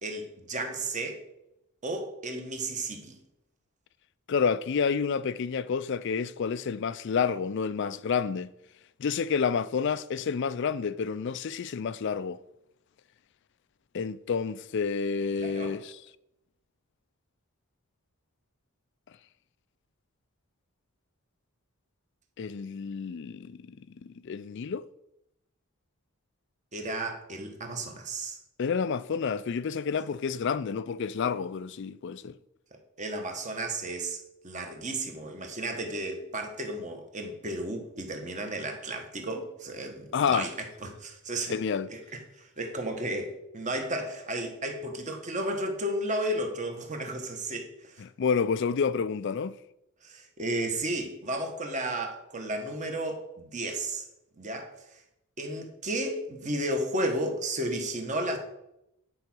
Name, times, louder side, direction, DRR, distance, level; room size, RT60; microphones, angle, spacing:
voice 1, 0.0-1.2 1.8-3.2 15.4-15.8 26.7-28.4 33.0-34.2 34.4-40.5 40.8-41.6 41.9-42.0 42.4-48.0 50.0-54.0 54.4-55.0 55.4-58.4, right 1 dB, 35° right, 1.4 m, -33 dB
voice 2, 4.3-8.5 9.0-12.4 13.9-16.0 22.4-23.8 24.0-24.9 28.6-32.4 40.1-40.5 41.5-41.9 48.0-49.6, left 6 dB, 55° left, 0.4 m, -29 dB
9.6 x 4.7 x 6.1 m
head